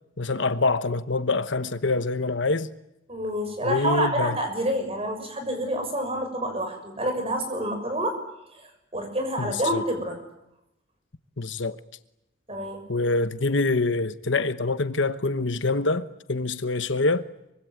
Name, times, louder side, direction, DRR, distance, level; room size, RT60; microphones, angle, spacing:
voice 1, 0.2-2.7 3.6-4.3 9.4-9.8 11.4-11.8 12.9-17.3, left 3 dB, 65° left, 1.1 m, -25 dB
voice 2, 3.1-8.2 8.9-10.2 12.5-12.8, equal, 30° right, 6.6 m, -28 dB
25.0 x 24.5 x 9.5 m
head